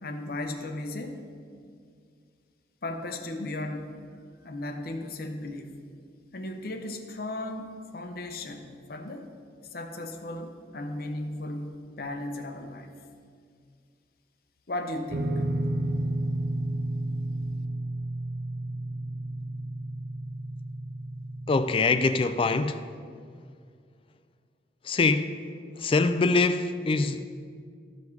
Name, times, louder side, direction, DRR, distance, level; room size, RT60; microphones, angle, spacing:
voice 1, 0.0-1.2 2.8-4.0 4.4-5.9 6.3-9.3 9.7-12.9 14.7-15.4, left 1 dB, 55° left, 0.8 m, -36 dB
sound 1, 15.1-21.6, right 1 dB, 65° right, 0.8 m, -31 dB
voice 2, 21.5-22.8 24.8-25.4 25.8-27.3, left 3 dB, 30° left, 0.4 m, -24 dB
13.0 x 5.4 x 4.6 m
head